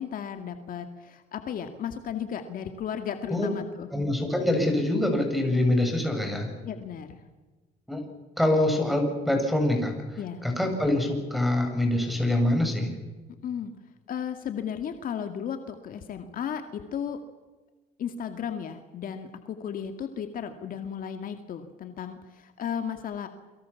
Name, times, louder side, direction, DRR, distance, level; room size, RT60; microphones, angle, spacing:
voice 1, 0.0-3.9 6.6-7.2 10.2-10.4 13.4-13.7 14.1-17.2 18.0-23.3, left 8 dB, 55° left, 7 dB, 2.3 m, -34 dB
voice 2, 3.9-6.5 7.9-8.0 8.4-12.9, left 1 dB, ahead, 4 dB, 7.6 m, -25 dB
29.0 x 23.0 x 7.3 m, 1.2 s
cardioid pair, 110°, 17 cm